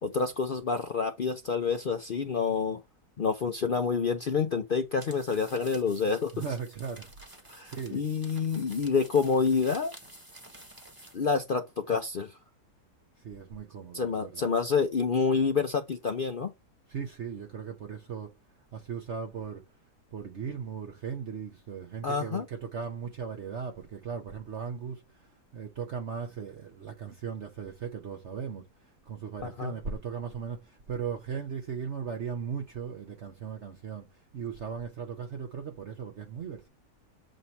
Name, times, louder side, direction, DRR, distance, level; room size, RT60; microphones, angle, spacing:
voice 1, 0.0-2.8 3.2-6.3 7.5-9.9 11.1-12.3 13.9-16.5 22.0-22.5 29.4-29.7, left 5 dB, 60° left, 0.5 m, -28 dB
sound 1, 4.9-11.3, right 1 dB, 15° right, 1.3 m, -51 dB
voice 2, 6.3-7.1 7.6-8.0 13.2-14.5 16.9-18.3 18.7-19.6 20.1-25.3 25.5-28.7 29.1-34.1 34.3-36.7, right 6 dB, 50° right, 1.1 m, -37 dB
7.7 x 2.8 x 4.4 m
omnidirectional pair, 1.7 m